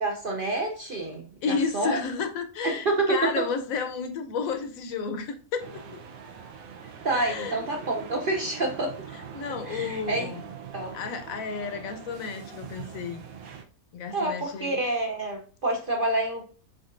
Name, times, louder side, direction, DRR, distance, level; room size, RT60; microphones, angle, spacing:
voice 1, 0.0-2.0 2.6-3.5 7.0-9.0 9.7-10.3 10.7-10.9 14.1-16.4, right 2 dB, 50° right, 1 dB, 0.6 m, -28 dB
voice 2, 1.4-6.0 7.1-7.6 9.1-10.5 10.9-13.2 13.9-14.8, left 5 dB, 70° left, 8 dB, 1.0 m, -32 dB
sound 1, 5.6-13.6, right 7 dB, 70° right, 1.1 m, -42 dB
5.1 x 3.9 x 2.4 m, 0.39 s
omnidirectional pair, 1.6 m